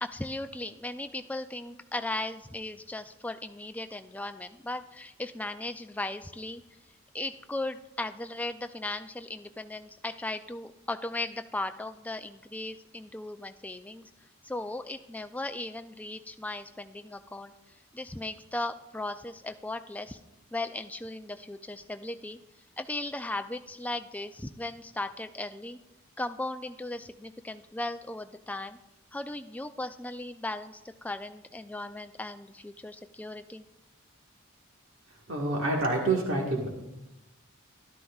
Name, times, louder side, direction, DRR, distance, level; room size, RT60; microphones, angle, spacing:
voice 1, 0.0-6.6 7.1-14.0 14.4-17.5 17.9-20.2 20.5-22.4 22.8-25.8 26.2-28.8 29.1-33.6, left 2 dB, 5° left, 8 dB, 0.3 m, -37 dB
voice 2, 35.3-36.7, right 2 dB, 70° right, 0 dB, 1.6 m, -27 dB
13.0 x 12.0 x 2.4 m, 0.95 s
head